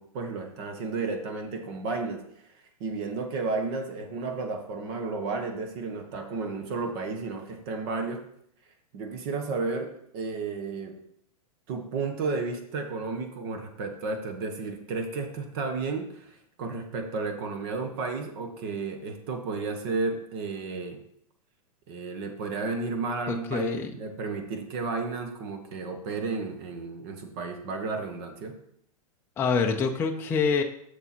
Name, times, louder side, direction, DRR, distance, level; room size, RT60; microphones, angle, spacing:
voice 1, 0.0-2.2 2.8-8.2 8.9-10.9 11.7-21.0 21.9-28.5, right 4 dB, 45° right, 5 dB, 1.4 m, -32 dB
voice 2, 23.3-23.9 29.4-30.6, left 5 dB, 10° left, 2 dB, 0.5 m, -26 dB
6.8 x 6.8 x 4.4 m, 0.71 s
hypercardioid pair, 150°, 19 cm